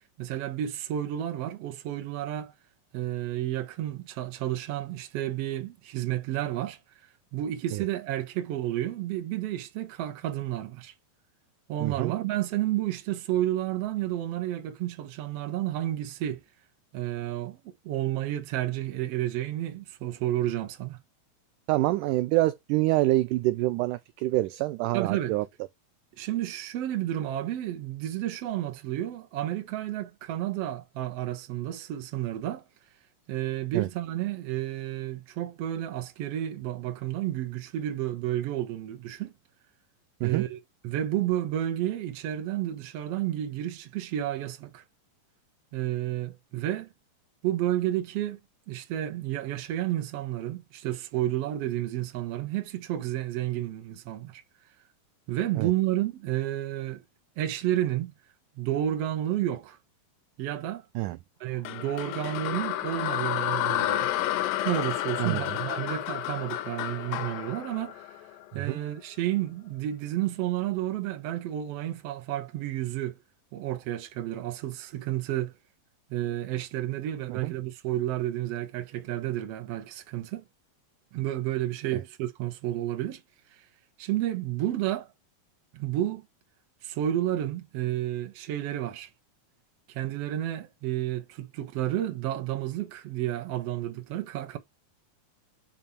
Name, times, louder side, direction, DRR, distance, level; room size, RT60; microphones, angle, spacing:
voice 1, 0.2-2.5 2.9-6.8 7.3-10.9 11.7-16.4 16.9-17.6 17.8-21.0 24.9-25.4 26.2-32.6 33.3-39.3 40.2-44.8 45.7-46.9 47.4-48.4 48.7-54.4 55.3-57.0 57.4-58.1 58.6-59.8 60.4-60.8 61.4-64.1 64.6-68.1 68.5-73.2 73.5-75.5 76.1-80.4 81.1-83.2 84.0-85.1 85.7-86.3 86.8-89.1 89.9-94.6, right 13 dB, 60° right, 1.8 m, -31 dB
voice 2, 11.8-12.1 21.7-25.4 33.7-33.9 40.2-40.4 55.6-55.7 61.0-61.2 65.2-65.4 68.5-68.8 77.3-77.5, right 18 dB, 80° right, 1.9 m, -26 dB
sound 1, 61.7-68.8, left 14 dB, 90° left, 2.3 m, -31 dB
8.7 x 3.1 x 4.2 m
omnidirectional pair, 3.9 m